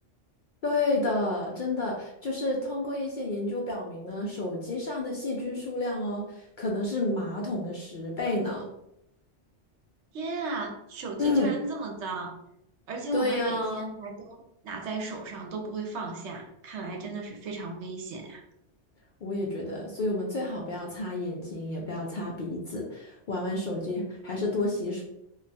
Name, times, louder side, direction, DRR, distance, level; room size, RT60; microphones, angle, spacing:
voice 1, 0.6-8.7 11.2-11.5 13.1-13.9 19.2-25.0, left 2 dB, 60° left, -2 dB, 0.5 m, -30 dB
voice 2, 10.1-12.3 12.9-14.4 14.6-18.4, right 3 dB, 75° right, 2 dB, 0.9 m, -35 dB
2.3 x 2.2 x 3.9 m, 0.81 s
omnidirectional pair, 1.2 m